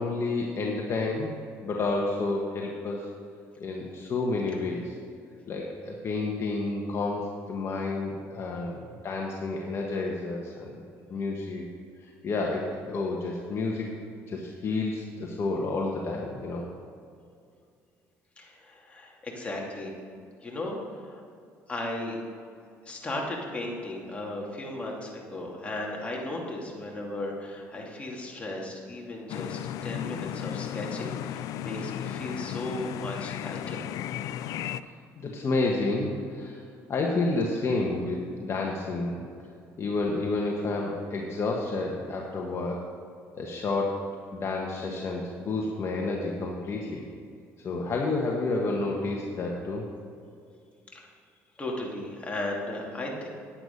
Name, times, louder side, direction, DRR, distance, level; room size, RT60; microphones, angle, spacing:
voice 1, 0.0-1.3 1.6-3.1 3.6-5.0 5.5-10.8 11.1-11.6 12.2-13.9 14.3-16.6 34.8-36.6 36.9-39.2 39.8-42.9 43.3-47.1 47.6-49.9, left 3 dB, 45° left, -1 dB, 1.3 m, -30 dB
voice 2, 18.4-19.9 20.4-21.2 21.7-22.2 22.9-33.9 50.9-51.1 51.6-53.3, left 1 dB, 20° left, -2 dB, 2.6 m, -36 dB
sound 1, 29.3-34.8, left 11 dB, 70° left, 0.4 m, -35 dB
9.9 x 9.0 x 5.3 m, 2.4 s
cardioid pair, 90°, 6 cm